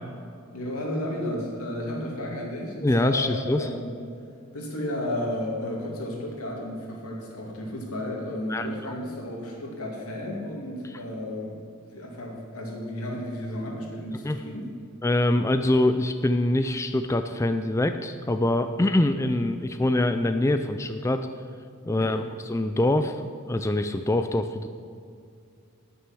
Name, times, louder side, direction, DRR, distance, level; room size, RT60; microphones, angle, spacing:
voice 1, 0.5-4.1 4.5-11.6 11.9-14.7 21.9-22.2, left 1 dB, 85° left, -1 dB, 2.6 m, -33 dB
voice 2, 2.8-3.7 8.5-8.7 14.2-14.4 15.0-21.3 21.9-23.2 23.5-24.7, left 1 dB, 15° left, 8 dB, 0.3 m, -24 dB
9.9 x 9.6 x 6.2 m, 2.4 s
head